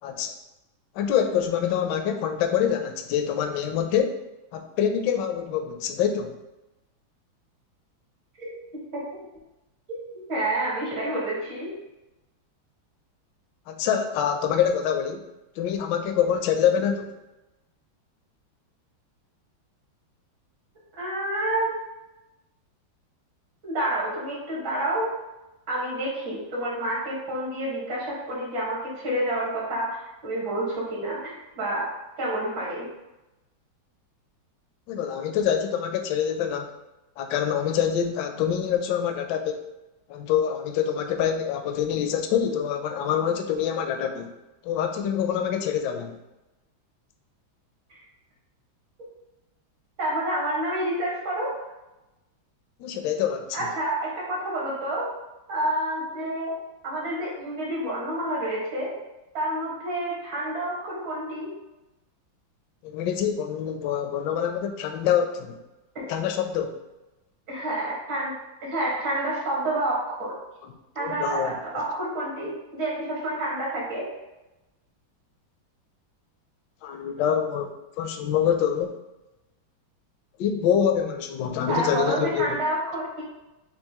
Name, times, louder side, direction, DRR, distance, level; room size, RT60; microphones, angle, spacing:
voice 1, 0.0-0.3 1.0-4.2 4.5-6.3 13.7-15.3 15.6-17.1 34.9-36.7 37.2-39.7 40.1-44.3 44.6-46.1 52.8-53.7 62.8-65.6 66.1-66.8 71.0-71.6 76.8-78.9 80.4-82.6, left 8 dB, 75° left, 6 dB, 1.1 m, -25 dB
voice 2, 10.3-11.8 21.0-21.8 23.6-25.2 25.7-31.9 32.2-32.9 47.9-48.0 50.0-51.6 53.5-55.1 55.5-56.6 56.8-58.9 59.3-61.5 67.5-68.3 68.6-70.3 71.0-74.1 81.7-83.2, right 1 dB, 70° right, -6 dB, 2.3 m, -29 dB
7.0 x 2.6 x 2.9 m, 0.98 s
omnidirectional pair, 2.2 m